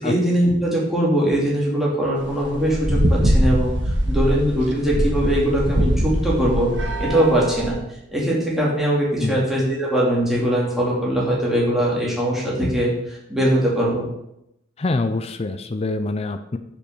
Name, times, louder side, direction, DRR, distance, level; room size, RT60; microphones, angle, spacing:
voice 1, 0.0-6.7 7.0-7.8 8.1-14.0, right 1 dB, ahead, -6 dB, 2.5 m, -21 dB
sound 1, 2.3-7.7, equal, 65° right, 1.5 m, -22 dB
voice 2, 14.8-16.6, left 2 dB, 35° left, 9 dB, 0.5 m, -25 dB
7.2 x 5.3 x 6.5 m, 0.80 s
head